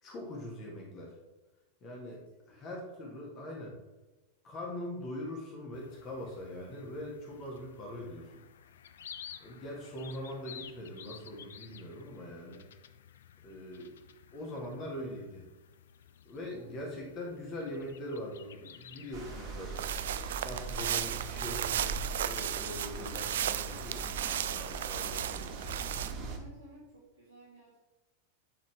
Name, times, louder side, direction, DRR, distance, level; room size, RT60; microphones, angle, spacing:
voice 1, 0.0-1.2 1.8-2.2 2.5-3.7 4.4-8.3 9.4-12.6 13.4-13.9 14.3-15.5 16.2-19.9 20.4-25.4, left 1 dB, 35° left, -1 dB, 1.9 m, -42 dB
voice 2, 2.0-2.6 16.3-16.8 26.3-27.8, right 1 dB, 90° left, -6 dB, 2.0 m, -57 dB
sound 1, 5.7-21.3, left 9 dB, 60° left, 0.4 m, -53 dB
sound 2, 19.1-26.4, right 3 dB, 40° right, 1.7 m, -41 dB
sound 3, 19.7-26.1, right 10 dB, 60° right, 0.3 m, -35 dB
10.0 x 4.3 x 3.4 m, 1.1 s
figure-of-eight pair, 90°, 0 cm